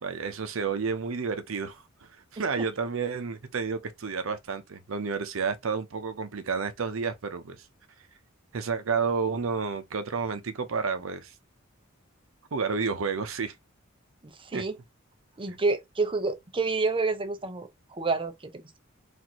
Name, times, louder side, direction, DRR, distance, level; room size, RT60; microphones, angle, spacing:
voice 1, 0.0-1.8 2.3-7.6 8.5-11.3 12.5-13.5 14.5-14.6, right 5 dB, 70° right, 0.7 m, -30 dB
voice 2, 14.2-14.8 15.4-18.8, right 3 dB, 25° right, 0.6 m, -29 dB
4.3 x 2.6 x 2.9 m
head